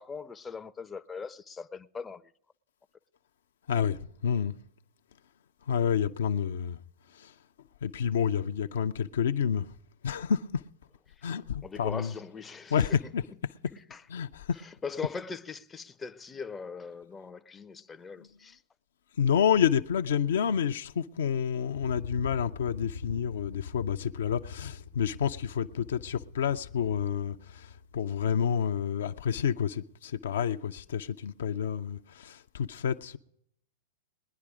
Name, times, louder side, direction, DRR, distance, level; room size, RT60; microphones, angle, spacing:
voice 1, 0.0-2.2 11.2-11.3 11.6-13.0 13.7-14.0 14.5-18.6, left 5 dB, 15° left, 0.5 m, -40 dB
voice 2, 3.7-4.5 5.7-6.8 7.2-7.3 7.8-9.7 10.0-10.6 11.2-12.1 12.7-13.2 14.1-14.5 19.2-33.2, left 8 dB, 70° left, 0.5 m, -29 dB
sound 1, 21.7-28.4, left 6 dB, 90° left, 1.1 m, -43 dB
20.5 x 10.5 x 4.9 m
figure-of-eight pair, 100°, 0 cm